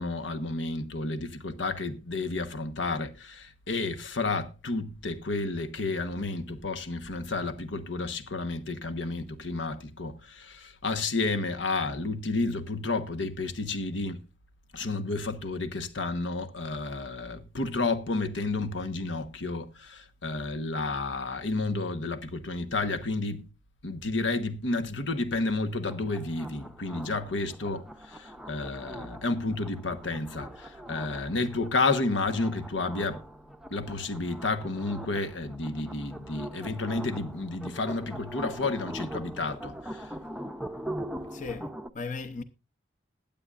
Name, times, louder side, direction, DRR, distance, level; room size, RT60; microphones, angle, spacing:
voice 1, 0.0-14.3 14.7-23.5 23.8-33.2 33.7-40.1, left 3 dB, 90° left, 1.2 m, -31 dB
sound 1, 25.8-41.9, right 1 dB, 5° right, 0.5 m, -42 dB
voice 2, 41.3-42.4, left 4 dB, 45° left, 0.8 m, -37 dB
21.0 x 8.7 x 2.5 m
head